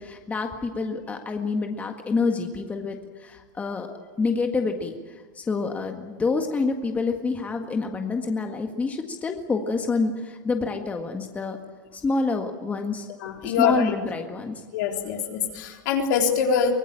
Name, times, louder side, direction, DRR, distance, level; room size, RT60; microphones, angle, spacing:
voice 1, 0.0-3.9 4.2-11.6 11.9-13.1 13.4-14.6, left 4 dB, 15° left, 4 dB, 1.7 m, -27 dB
voice 2, 13.2-14.0 14.7-16.7, left 6 dB, 65° left, 2 dB, 3.9 m, -24 dB
24.0 x 18.0 x 9.0 m, 1.5 s
supercardioid pair, 135°, 10 cm